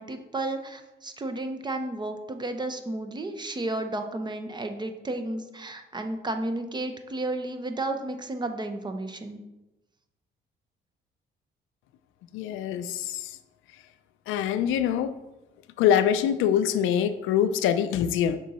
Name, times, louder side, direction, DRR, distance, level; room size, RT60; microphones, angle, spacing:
voice 1, 0.0-9.4, right 2 dB, 20° right, 7 dB, 0.7 m, -32 dB
voice 2, 12.3-13.4 14.3-15.1 15.8-18.4, left 9 dB, 90° left, 12 dB, 0.4 m, -24 dB
6.2 x 3.8 x 4.1 m, 0.99 s
cardioid pair, 90°, 20 cm